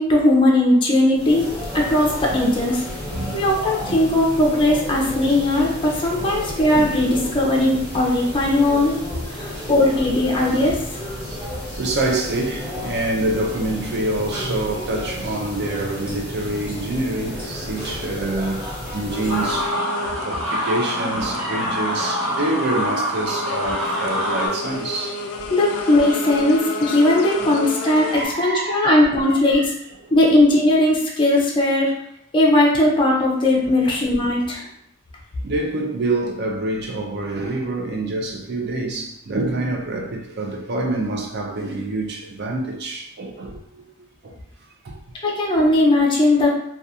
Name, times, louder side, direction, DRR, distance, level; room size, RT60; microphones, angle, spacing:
voice 1, 0.0-1.4 1.7-2.8 3.3-9.0 9.3-10.8 25.5-29.7 30.1-31.9 32.3-34.6 45.2-46.5, left 1 dB, 25° left, 0.4 m, -18 dB
sound 1, 1.1-19.7, equal, 10° right, 1.1 m, -32 dB
voice 2, 3.1-3.4 3.8-4.0 4.6-4.7 5.4-5.5 6.2-6.3 7.6-7.7 9.3-9.6 11.2-11.3 11.8-19.8 20.2-25.5 27.4-29.7 30.0-30.1 33.8-33.9 35.4-43.8 44.2-44.3 44.8-45.0, right 2 dB, 55° right, 0.5 m, -27 dB
sound 2, 19.1-28.2, left 3 dB, 90° left, 0.4 m, -32 dB
sound 3, 19.3-24.5, equal, 90° right, 1.0 m, -25 dB
2.4 x 2.3 x 2.7 m
head